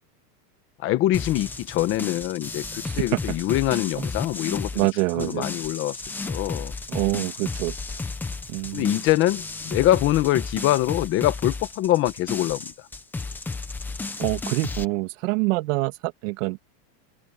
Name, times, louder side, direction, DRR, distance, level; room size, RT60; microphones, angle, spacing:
voice 1, 0.8-4.9 5.1-6.7 8.7-12.9, left 15 dB, 25° left, 1.1 m, -24 dB
sound 1, 1.1-14.8, left 3 dB, 5° left, 0.6 m, -33 dB
voice 2, 4.7-5.5 6.9-7.8 8.5-9.0 14.2-16.6, right 22 dB, 50° right, 2.6 m, -26 dB
supercardioid pair, 170°, 48 cm